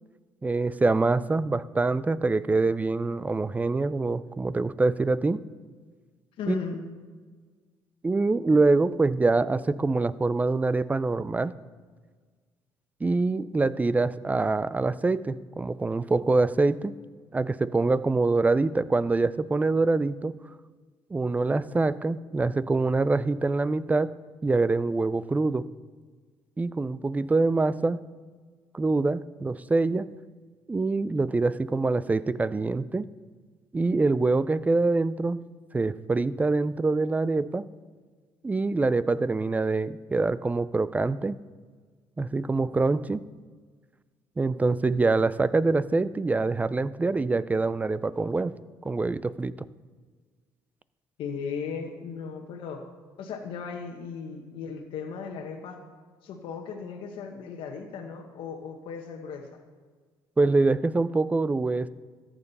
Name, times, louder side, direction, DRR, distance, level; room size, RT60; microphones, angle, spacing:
voice 1, 0.4-5.4 6.5-6.6 8.0-11.5 13.0-16.9 17.3-20.3 21.1-24.1 24.4-25.7 26.6-28.0 28.7-30.1 30.7-33.1 33.7-35.4 35.7-37.7 38.4-41.4 42.2-43.2 44.4-48.5 48.8-49.5 60.4-61.9, right 3 dB, 15° right, 17 dB, 0.4 m, -25 dB
voice 2, 6.4-6.8 51.2-52.9 53.2-55.8 56.2-59.6, left 6 dB, 75° left, 2 dB, 1.1 m, -36 dB
14.0 x 8.8 x 4.1 m, 1.5 s
cardioid pair, 90°, 9 cm